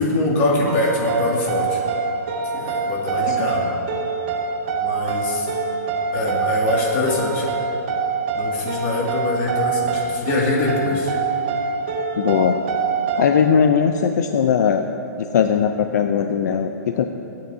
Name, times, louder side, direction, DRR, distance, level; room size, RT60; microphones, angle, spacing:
voice 1, 0.0-1.8 2.4-3.7 4.8-5.5 6.1-7.5 8.3-11.1, left 2 dB, 35° left, -3 dB, 2.3 m, -23 dB
sound 1, 0.7-13.5, right 4 dB, 35° right, 0.7 m, -25 dB
voice 2, 12.2-12.6 13.2-14.9 15.2-17.1, left 7 dB, 70° left, 7 dB, 0.5 m, -19 dB
23.0 x 8.9 x 2.8 m, 2.9 s
hypercardioid pair, 160°, 10 cm